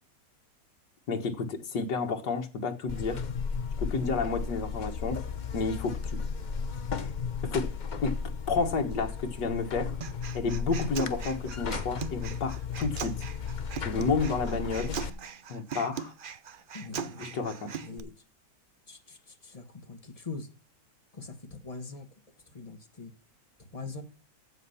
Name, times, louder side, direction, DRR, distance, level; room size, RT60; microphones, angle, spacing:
voice 1, 1.1-3.2 3.8-5.2 5.5-6.2 7.4-7.7 8.0-8.2 8.5-10.0 10.3-13.1 13.8-15.0 15.5-16.1 17.2-17.8, left 4 dB, 70° left, 2.1 m, -30 dB
Buzz, 2.9-15.1, left 6 dB, 50° left, 0.5 m, -35 dB
Human voice, 10.0-18.0, right 6 dB, 60° right, 0.5 m, -40 dB
voice 2, 16.7-18.1 18.9-20.5 21.1-22.1 22.5-23.1 23.7-24.0, left 4 dB, 20° left, 1.4 m, -43 dB
15.0 x 5.2 x 5.6 m
omnidirectional pair, 1.9 m